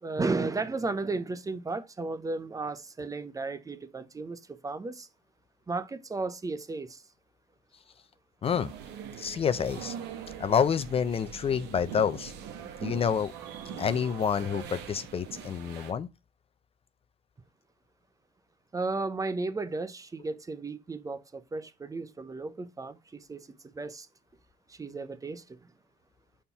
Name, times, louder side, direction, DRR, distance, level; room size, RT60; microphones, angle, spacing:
voice 1, 0.0-5.1 5.7-7.0 18.7-24.1 24.7-25.6, right 3 dB, 20° right, 0.6 m, -34 dB
sound 1, 8.4-15.9, right 8 dB, 85° right, 1.2 m, -42 dB
voice 2, 9.2-9.9 10.4-12.3 12.8-13.3 13.8-16.1, left 7 dB, 35° left, 0.5 m, -28 dB
5.3 x 4.3 x 5.6 m
cardioid pair, 110°, 17 cm